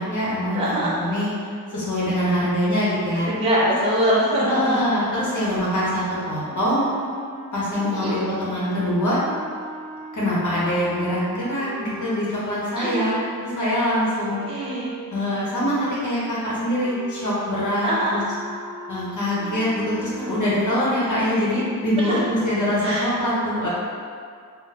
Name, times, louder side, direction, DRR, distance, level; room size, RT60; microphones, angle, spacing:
voice 1, 0.0-0.6 1.0-3.3 4.5-6.9 7.5-9.2 10.1-14.6 15.1-18.2 18.9-23.7, equal, 50° left, -8 dB, 0.9 m, -24 dB
voice 2, 0.5-1.0 3.1-4.8 7.9-8.2 12.8-13.1 14.4-14.9 17.8-18.2 21.0-21.2 22.0-22.2 22.8-23.1, right 1 dB, 15° right, -7 dB, 0.5 m, -23 dB
sound 1, 5.3-15.1 15.5-20.8, right 1 dB, 35° left, 1.3 m, -40 dB
3.1 x 2.1 x 2.9 m, 2.2 s
cardioid pair, 65°, 37 cm